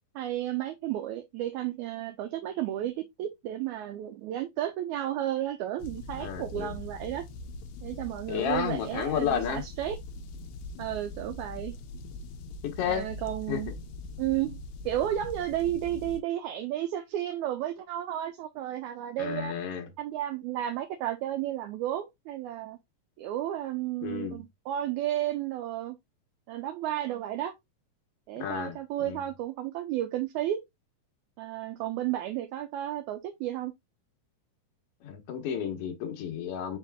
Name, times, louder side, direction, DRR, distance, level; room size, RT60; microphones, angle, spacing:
voice 1, 0.2-7.3 7.8-10.0 10.8-11.8 12.8-13.7 14.2-14.6 14.8-19.6 20.0-22.8 23.2-26.0 26.5-27.5 28.3-30.6 31.4-33.7, right 12 dB, 85° right, 1.7 m, -32 dB
sound 1, 5.8-16.2, left 2 dB, 80° left, 1.6 m, -42 dB
voice 2, 6.2-6.7 8.3-9.6 12.6-13.1 13.5-13.6 19.2-19.8 24.0-24.4 28.4-29.2 35.0-36.8, left 8 dB, 65° left, 1.5 m, -32 dB
5.0 x 4.2 x 2.2 m
omnidirectional pair, 3.9 m